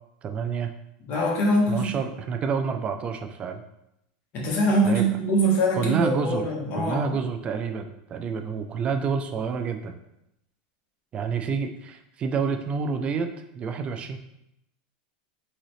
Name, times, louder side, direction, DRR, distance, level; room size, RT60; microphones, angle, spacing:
voice 1, 0.2-0.7 1.7-3.6 4.8-5.1 5.7-6.5 6.8-10.0 11.1-14.2, right 5 dB, 25° right, 6 dB, 0.4 m, -28 dB
voice 2, 1.1-2.1 4.3-7.0, right 1 dB, 40° left, -3 dB, 1.3 m, -23 dB
4.1 x 3.8 x 3.1 m, 0.83 s
supercardioid pair, 145°, 5 cm